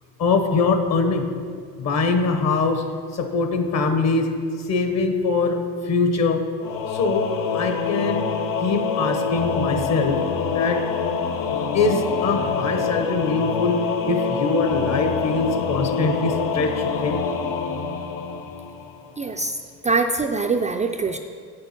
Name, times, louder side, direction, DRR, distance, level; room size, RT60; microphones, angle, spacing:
voice 1, 0.2-1.3 1.8-2.8 3.1-4.3 4.7-6.4 6.9-7.3 7.5-8.3 8.6-10.2 10.5-10.8 11.7-13.8 14.1-17.2, left 4 dB, 50° left, 6 dB, 1.0 m, -22 dB
Singing / Musical instrument, 6.6-19.1, left 5 dB, 70° left, 0.8 m, -26 dB
voice 2, 19.2-19.6 19.8-21.2, right 4 dB, 20° right, 4 dB, 0.3 m, -23 dB
7.6 x 6.8 x 5.8 m, 2.1 s
cardioid pair, 125°, 35 cm